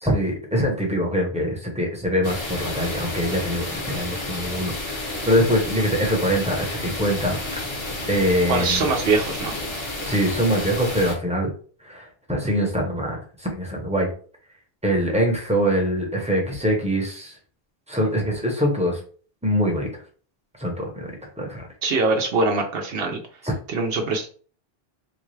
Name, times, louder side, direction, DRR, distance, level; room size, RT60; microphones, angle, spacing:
voice 1, 0.0-7.4 8.1-8.9 10.1-11.5 11.8-14.1 14.8-17.3 17.9-19.0 19.4-19.9 20.6-21.1 21.4-21.7 23.4-23.5, equal, 5° right, -1 dB, 0.8 m, -23 dB
sound 1, 2.2-11.1, left 2 dB, 30° left, 0.7 m, -31 dB
voice 2, 8.5-9.5 21.8-23.2 23.7-24.3, right 3 dB, 70° right, 3 dB, 0.8 m, -22 dB
3.8 x 2.3 x 3.1 m, 0.42 s
omnidirectional pair, 1.0 m